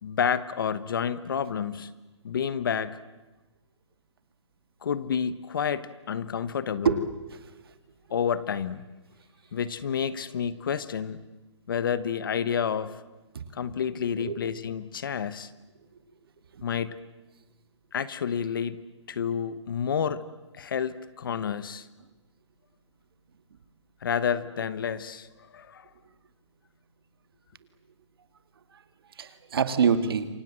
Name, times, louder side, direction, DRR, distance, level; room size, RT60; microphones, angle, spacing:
voice 1, 0.0-1.9 2.2-3.0 4.8-7.0 8.1-8.8 9.5-11.2 11.7-13.0 13.5-15.5 16.6-16.9 17.9-18.8 19.1-20.2 20.5-21.9 24.0-25.8, left 7 dB, 45° left, 15 dB, 1.1 m, -29 dB
voice 2, 6.8-7.6 13.3-13.4 14.2-14.4 16.5-16.6 28.7-28.8 29.2-30.3, right 6 dB, 50° right, 11 dB, 2.0 m, -26 dB
28.0 x 24.5 x 7.6 m, 1.1 s
hypercardioid pair, 175°, 15 cm